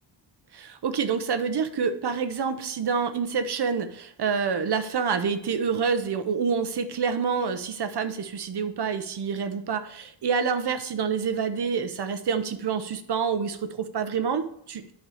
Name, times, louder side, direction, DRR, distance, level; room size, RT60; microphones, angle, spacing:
voice 1, 0.5-14.9, right 6 dB, 60° right, 9 dB, 0.8 m, -27 dB
9.4 x 4.5 x 5.0 m, 0.72 s
wide cardioid pair, 150°, 46 cm